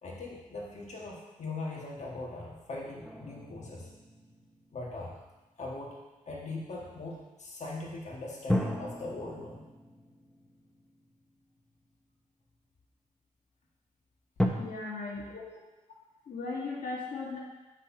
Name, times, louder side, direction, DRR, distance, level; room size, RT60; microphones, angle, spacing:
voice 1, 0.0-3.9 4.7-5.1 5.6-9.7 15.3-15.6, left 2 dB, 55° left, -3 dB, 1.6 m, -40 dB
sound 1, 3.0-5.6 8.5-11.8 12.5-12.6 14.4-14.5, left 1 dB, 5° left, 1.1 m, -35 dB
voice 2, 14.6-15.3 16.3-17.4, left 3 dB, 75° left, -4 dB, 1.7 m, -37 dB
8.1 x 4.4 x 5.8 m, 1.1 s
cardioid pair, 65°, 14 cm